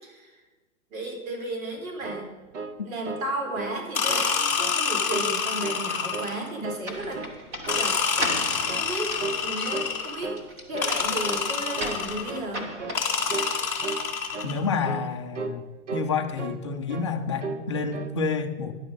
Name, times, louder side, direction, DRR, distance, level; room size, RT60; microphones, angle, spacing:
voice 1, 0.0-0.4 0.9-2.3 2.8-7.2 7.8-8.0 8.7-10.4 10.7-12.7, right 1 dB, 80° right, 2 dB, 4.4 m, -34 dB
sound 1, 1.8-3.3 3.6-3.8 4.1-4.8 5.1-5.8 6.1-6.9 7.1-7.4 7.7-8.4 8.7-8.9 9.2-9.5 9.7-10.5 10.7-11.0 11.2-11.5 11.8-12.0 12.3-12.5 12.8-13.0 13.3-13.5 13.8-14.0 14.3-14.5 14.8-15.1 15.3-15.6 15.9-16.6 16.9-17.1 17.4-17.7 17.9-18.2, right 4 dB, 60° right, 1.2 m, -35 dB
sound 2, 3.9-6.5 7.7-10.3 10.8-12.4 12.9-14.6, left 6 dB, 5° left, 1.3 m, -27 dB
sound 3, 6.8-14.5, equal, 15° right, 1.0 m, -38 dB
voice 2, 14.4-15.6 15.9-18.7, left 5 dB, 20° left, 4 dB, 0.5 m, -28 dB
15.0 x 11.0 x 5.3 m, 1.3 s
hypercardioid pair, 170°, 41 cm